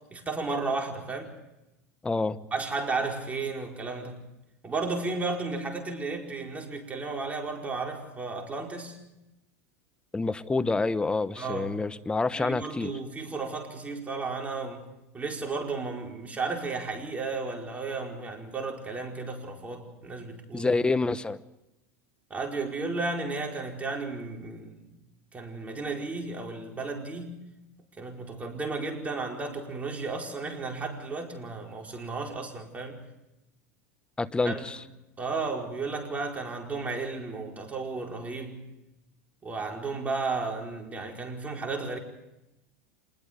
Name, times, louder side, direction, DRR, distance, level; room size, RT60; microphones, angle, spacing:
voice 1, 0.1-1.3 2.5-4.2 4.6-9.0 11.4-11.7 12.3-14.9 15.1-20.7 22.3-24.9 25.3-27.4 28.0-33.0 34.4-34.6 35.2-38.6 39.4-42.0, right 3 dB, 20° right, 2 dB, 4.8 m, -33 dB
voice 2, 2.0-2.4 10.1-12.9 20.5-21.4 34.2-34.8, left 3 dB, 10° left, 14 dB, 1.0 m, -27 dB
26.5 x 20.5 x 5.2 m, 0.92 s
hypercardioid pair, 105°, 8 cm